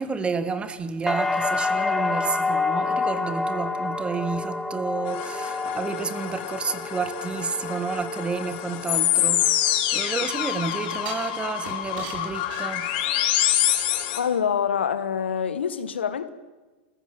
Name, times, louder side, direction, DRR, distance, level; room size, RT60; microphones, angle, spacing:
voice 1, 0.0-12.9, right 4 dB, 20° right, 1.8 m, -30 dB
sound 1, 1.1-9.0 9.3-10.0, left 3 dB, 5° left, 1.1 m, -28 dB
sound 2, 5.1-14.2, left 12 dB, 60° left, 3.0 m, -26 dB
sound 3, 9.0-10.2 11.1-13.4 13.8-13.9, right 5 dB, 65° right, 8.0 m, -41 dB
voice 2, 14.2-16.3, left 7 dB, 90° left, 1.6 m, -25 dB
29.0 x 16.0 x 8.0 m
hypercardioid pair, 115°, 6 cm